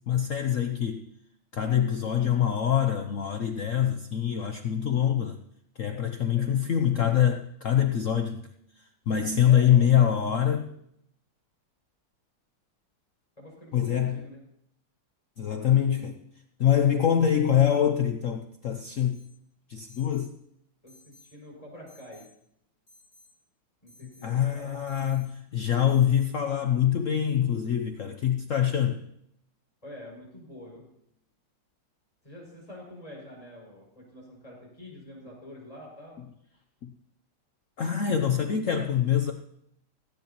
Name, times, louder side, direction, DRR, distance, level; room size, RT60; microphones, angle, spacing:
voice 1, 0.1-1.1 1.5-5.4 5.8-8.5 8.8-10.7 13.7-14.2 15.4-16.3 16.6-19.2 19.7-20.3 24.2-29.0 36.8-36.9 37.8-39.3, left 9 dB, 85° left, 6 dB, 0.6 m, -24 dB
voice 2, 6.4-7.0 9.5-10.7 13.4-14.4 20.8-22.3 23.8-24.8 29.8-30.8 32.2-36.2, left 1 dB, 15° left, -3 dB, 6.2 m, -47 dB
Alarm, 18.9-19.4 19.9-20.3 20.9-21.4 21.9-22.3 22.9-23.3 23.9-24.3 24.9-25.3 25.9-26.3, left 2 dB, 35° left, 4.9 m, -58 dB
17.5 x 16.5 x 3.0 m, 0.73 s
omnidirectional pair, 2.3 m